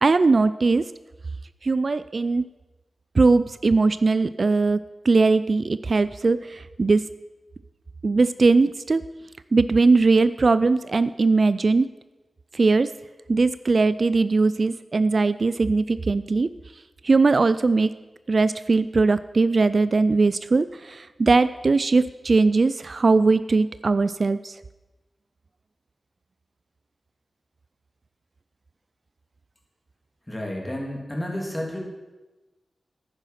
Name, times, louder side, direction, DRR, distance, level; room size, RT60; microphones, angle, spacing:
voice 1, 0.0-0.8 1.6-2.5 3.2-4.8 5.0-7.0 8.0-9.0 9.5-11.9 12.5-12.9 13.3-16.5 17.0-17.9 18.3-24.5, right 3 dB, 55° right, 14 dB, 0.3 m, -20 dB
voice 2, 30.3-31.8, left 1 dB, 20° left, 0 dB, 2.9 m, -31 dB
9.9 x 9.7 x 5.7 m, 1.1 s
wide cardioid pair, 65°, 0 cm